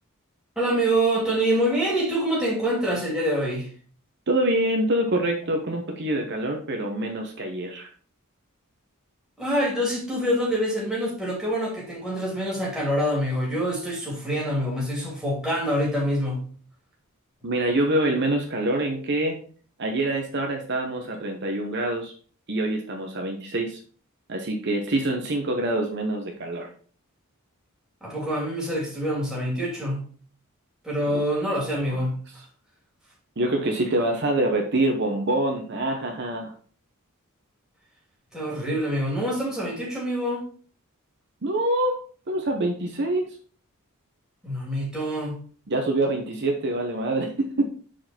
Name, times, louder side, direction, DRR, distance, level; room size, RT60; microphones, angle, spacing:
voice 1, 0.6-3.7 9.4-16.4 28.0-30.0 30.8-32.2 38.3-40.4 44.4-45.4, equal, 5° right, -4 dB, 2.7 m, -26 dB
voice 2, 4.3-7.9 17.4-19.4 19.8-22.1 22.5-23.8 24.3-26.7 31.1-31.2 31.9-32.0 33.4-36.5 41.4-42.0 42.3-43.3 45.7-47.6, right 1 dB, 55° right, 3 dB, 0.9 m, -25 dB
6.1 x 4.7 x 4.3 m, 0.43 s
head